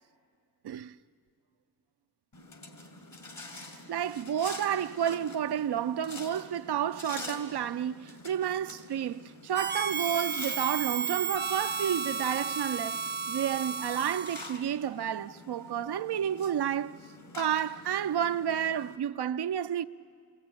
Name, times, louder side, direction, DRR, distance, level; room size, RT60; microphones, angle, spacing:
sound 1, 2.3-19.0, left 2 dB, 65° left, 4.4 m, -47 dB
voice 1, 3.9-17.0 17.4-19.8, right 9 dB, 90° right, 0.6 m, -31 dB
Harmonica, 9.5-14.6, right 5 dB, 30° right, 0.6 m, -33 dB
28.5 x 21.0 x 8.9 m
cardioid pair, 50°, 38 cm